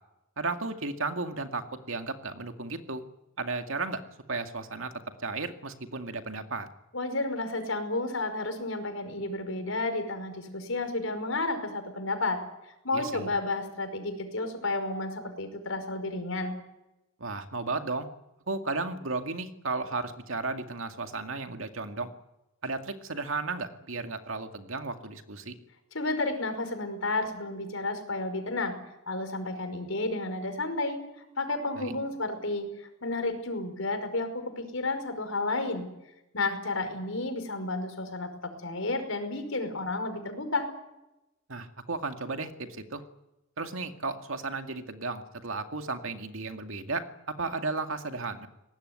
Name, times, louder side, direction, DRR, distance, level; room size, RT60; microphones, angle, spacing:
voice 1, 0.4-3.0 3.4-4.0 4.3-4.9 5.2-6.7 12.9-13.3 17.2-18.1 18.5-22.1 22.6-25.5 31.8-31.9 41.5-43.0 43.6-48.5, right 3 dB, 75° right, 6 dB, 2.2 m, -34 dB
voice 2, 6.9-12.4 12.8-16.5 25.9-28.7 29.1-31.0 31.4-35.9 36.3-40.6, left 2 dB, 75° left, 7 dB, 5.3 m, -31 dB
22.5 x 19.0 x 9.6 m, 0.92 s
head